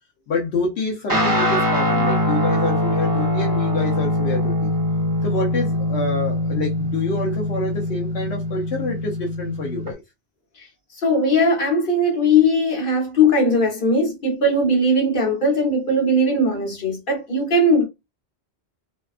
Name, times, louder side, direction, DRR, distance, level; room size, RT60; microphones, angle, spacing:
voice 1, 0.3-4.7 5.2-10.0, left 3 dB, 80° left, 1.0 m, -27 dB
Guitar, 1.1-9.9, left 1 dB, 25° right, 0.7 m, -22 dB
voice 2, 11.0-17.9, left 1 dB, 50° left, 1.2 m, -19 dB
2.7 x 2.2 x 2.4 m
omnidirectional pair, 1.1 m